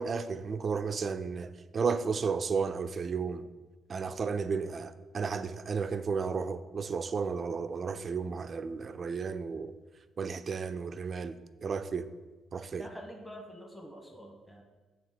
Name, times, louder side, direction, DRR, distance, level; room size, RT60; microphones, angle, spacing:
voice 1, 0.0-3.5 3.9-9.7 10.2-12.1 12.5-12.9, right 5 dB, 45° right, 0.4 m, -33 dB
voice 2, 12.8-14.6, equal, 5° left, 1.1 m, -46 dB
7.3 x 2.9 x 5.9 m
cardioid pair, 90°, 0 cm